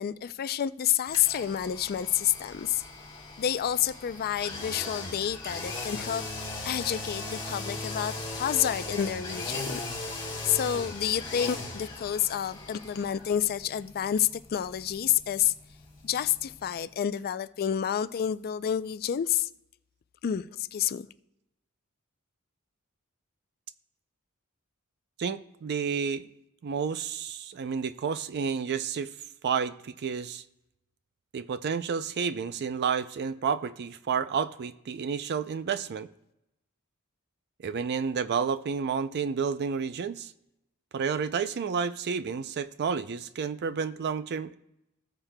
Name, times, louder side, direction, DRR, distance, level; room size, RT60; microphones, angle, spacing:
voice 1, 0.0-2.8 3.4-6.2 6.6-9.8 10.4-15.5 16.0-19.5 20.2-21.1, left 10 dB, 45° left, 0.3 m, -29 dB
sound 1, 1.1-16.9 17.2-17.3, left 3 dB, 20° left, 2.7 m, -38 dB
voice 2, 25.2-26.3 26.6-29.1 29.4-30.4 31.3-36.1 37.6-40.3 40.9-44.6, right 6 dB, 50° right, 0.4 m, -30 dB
18.5 x 7.3 x 2.2 m
head